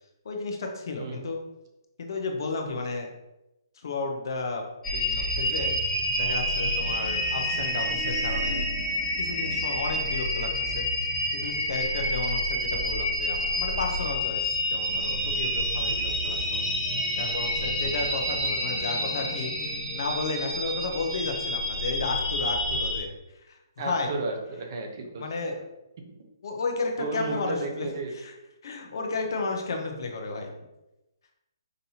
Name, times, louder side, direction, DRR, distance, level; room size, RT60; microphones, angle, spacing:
voice 1, 0.2-1.4 2.0-3.1 3.8-4.6 4.9-5.7 6.1-8.8 9.2-16.6 17.2-24.1 25.1-25.6 26.4-28.3 28.6-30.5, left 3 dB, 60° left, 3 dB, 0.8 m, -33 dB
sound 1, 4.8-23.0, equal, 15° left, 1.1 m, -28 dB
voice 2, 23.8-25.2 27.0-28.2, right 3 dB, 50° right, 2 dB, 0.8 m, -33 dB
5.2 x 2.7 x 2.8 m, 0.95 s
hypercardioid pair, 140°, 2 cm